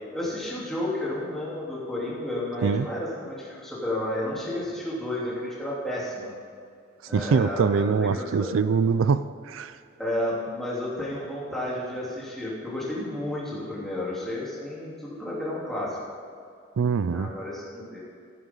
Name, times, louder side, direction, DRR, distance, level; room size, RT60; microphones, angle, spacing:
voice 1, 0.1-6.3 7.1-8.5 10.0-16.0 17.1-18.0, left 1 dB, ahead, -8 dB, 3.5 m, -32 dB
voice 2, 7.1-9.7 16.8-17.3, right 5 dB, 85° right, 14 dB, 0.4 m, -23 dB
15.0 x 11.0 x 3.9 m, 2.3 s
head